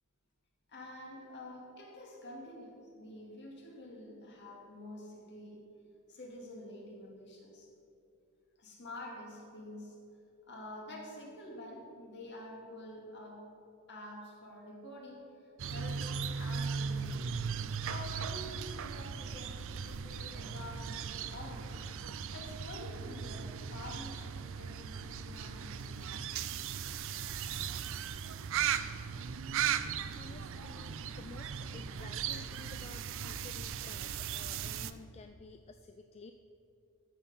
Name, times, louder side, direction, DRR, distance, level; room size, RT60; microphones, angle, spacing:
voice 1, 0.7-5.6 6.1-7.7 8.6-10.0 10.5-13.5 13.9-17.3 17.8-21.8 22.3-26.2 30.5-30.7, left 1 dB, 55° left, -1 dB, 2.2 m, -48 dB
sound 1, 15.6-34.9, right 7 dB, 65° right, 0.5 m, -38 dB
voice 2, 30.1-36.3, left 3 dB, 30° left, 7 dB, 0.3 m, -52 dB
13.5 x 6.7 x 5.6 m, 2.6 s
head